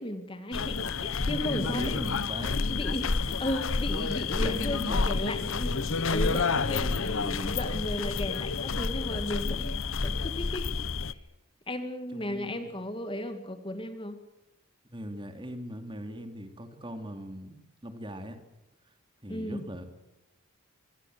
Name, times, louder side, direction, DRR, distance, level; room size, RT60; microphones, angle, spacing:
voice 1, 0.0-2.1 2.7-11.2 11.7-14.2 19.3-19.6, left 1 dB, 25° left, 8 dB, 1.8 m, -35 dB
sound 1, 0.5-11.1, left 4 dB, 65° left, 0.9 m, -29 dB
voice 2, 1.2-2.7 4.4-5.3 6.1-7.2 12.1-12.7 14.9-17.5 17.8-18.4 19.2-19.8, right 1 dB, 20° right, 7 dB, 2.6 m, -39 dB
25.0 x 21.5 x 7.9 m, 0.93 s
head